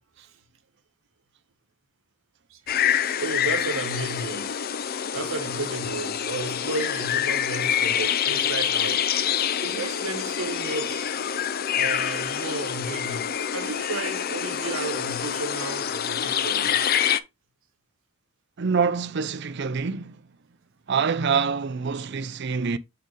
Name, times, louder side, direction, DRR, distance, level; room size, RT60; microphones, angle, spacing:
sound 1, 2.7-17.2, left 9 dB, 45° left, 0.5 m, -26 dB
voice 1, 3.2-4.6 5.1-9.1 9.6-11.1 11.7-16.8, right 3 dB, 75° right, 1.2 m, -33 dB
voice 2, 18.6-20.2 20.9-22.8, right 5 dB, 55° right, 0.6 m, -26 dB
7.5 x 4.5 x 3.3 m
head